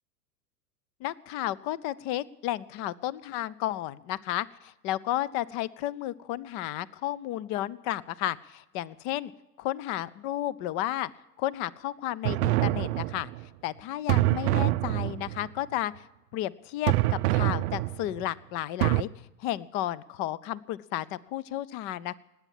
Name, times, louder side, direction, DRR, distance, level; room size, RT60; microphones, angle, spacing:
voice 1, 1.0-9.3 9.6-11.1 11.4-13.3 13.6-16.0 16.3-19.1 19.4-22.1, left 14 dB, 30° left, 21 dB, 0.4 m, -32 dB
sound 1, 12.2-13.4 14.1-15.5 16.9-18.3 18.8-19.0, right 18 dB, 45° right, 0.5 m, -26 dB
19.5 x 8.5 x 7.2 m, 0.99 s
figure-of-eight pair, 95°, 48 cm